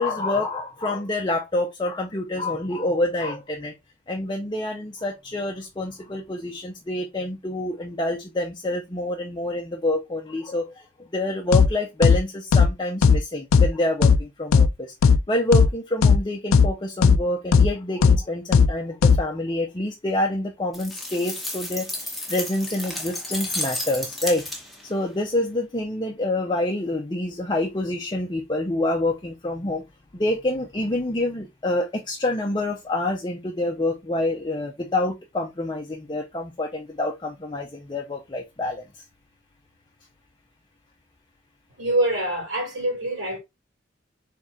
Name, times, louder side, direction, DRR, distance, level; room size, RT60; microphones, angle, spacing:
voice 1, 0.0-3.7 4.1-10.7 11.1-14.9 15.3-24.5 24.8-29.8 30.1-38.8, left 1 dB, 20° left, 0.6 m, -27 dB
sound 1, 11.5-11.7 12.0-12.2 12.5-12.7 13.0-13.2 13.5-13.7 14.0-14.2 14.5-14.7 15.0-15.2 15.5-15.7 16.0-16.2 16.5-16.7 17.0-17.2 17.5-17.7 18.0-18.2 18.5-18.7 19.0-19.2, left 5 dB, 90° left, 0.4 m, -15 dB
sound 2, 20.7-24.9, left 1 dB, ahead, 1.0 m, -32 dB
voice 2, 41.8-43.4, right 1 dB, 65° right, 2.6 m, -25 dB
4.6 x 3.6 x 2.7 m
head